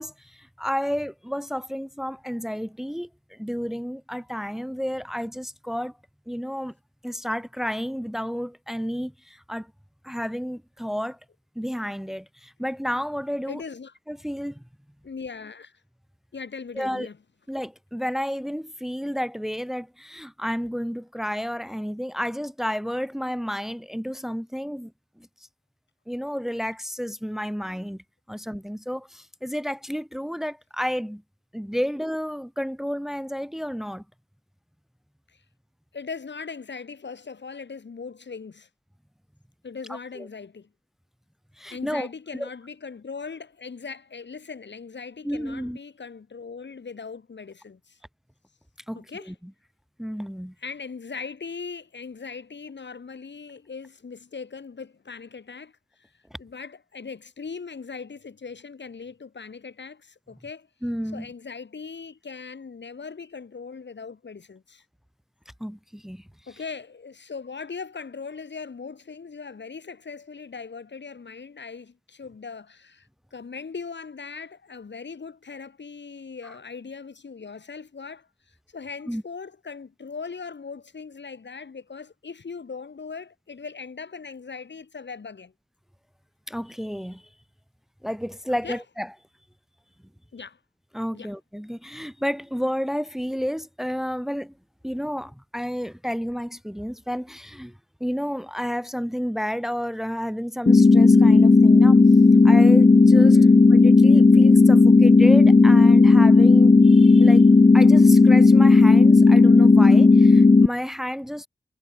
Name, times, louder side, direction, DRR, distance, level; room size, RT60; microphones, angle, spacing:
voice 1, 0.0-5.9 6.3-6.7 7.0-9.7 10.0-11.2 11.6-13.6 14.1-14.6 16.8-17.1 17.5-24.9 25.2-25.3 26.1-31.2 31.5-34.0 39.9-40.3 41.6-42.1 42.3-42.5 45.2-45.8 48.9-49.3 50.0-50.5 60.8-61.3 65.6-66.2 79.1-79.2 86.5-87.2 88.0-89.1 90.9-94.5 94.8-102.0 102.4-103.4 103.7-107.5 107.7-111.5, equal, ahead, 1.7 m, -31 dB
voice 2, 13.5-13.9 15.0-15.8 16.3-17.2 35.3-35.4 35.9-38.7 39.6-40.7 41.7-48.0 48.9-49.3 50.6-55.7 56.0-56.1 56.4-60.7 61.1-64.8 66.5-85.5 88.5-88.8 90.3-90.6 91.1-91.3 103.2-103.6, left 5 dB, 60° left, 3.8 m, -39 dB
sound 1, 100.7-110.7, left 3 dB, 25° left, 0.8 m, -13 dB
cardioid pair, 40°, 20 cm